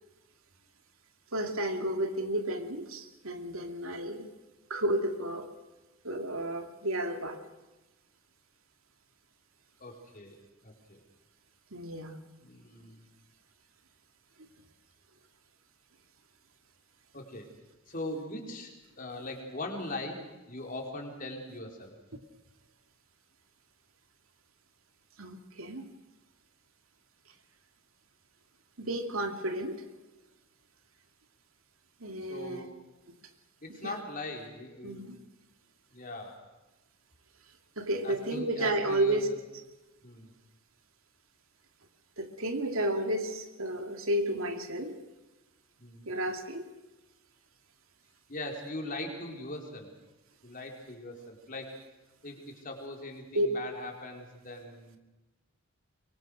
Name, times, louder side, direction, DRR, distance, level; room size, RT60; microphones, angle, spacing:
voice 1, 1.3-4.3 4.7-5.5 6.0-7.4 11.7-12.2 25.2-25.9 28.8-29.8 32.0-32.7 33.8-33.9 34.8-35.2 37.8-39.3 42.2-45.0 46.1-46.7 53.3-53.5, right 1 dB, 80° right, 5 dB, 2.5 m, -32 dB
voice 2, 9.8-10.4 10.6-11.0 12.4-13.1 17.1-17.5 17.9-21.9 32.2-32.7 33.6-35.1 35.9-36.4 38.0-39.2 40.0-40.3 45.8-46.1 48.3-49.9 50.4-51.7 52.2-55.0, left 2 dB, 40° left, 2 dB, 4.4 m, -40 dB
24.5 x 23.0 x 6.4 m, 1.1 s
head